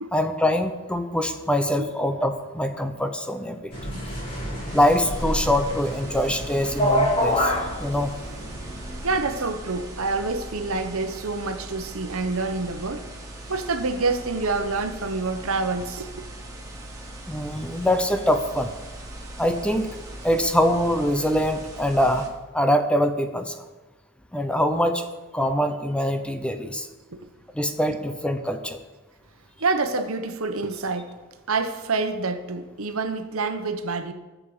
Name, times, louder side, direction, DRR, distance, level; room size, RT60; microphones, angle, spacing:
voice 1, 0.1-3.7 4.7-8.1 17.3-18.7 19.4-19.9 20.2-22.3 22.5-23.6 24.3-25.0 25.3-26.9 27.5-28.8, equal, 5° left, 0.8 m, -24 dB
sound 1, 3.7-9.2, equal, 25° left, 5.3 m, -28 dB
sound 2, 4.6-22.3, right 1 dB, 15° right, 2.6 m, -38 dB
voice 2, 9.0-13.0 13.5-16.2 27.1-27.2 29.6-31.1 31.5-34.1, right 3 dB, 75° right, 1.2 m, -27 dB
21.5 x 7.7 x 5.0 m
head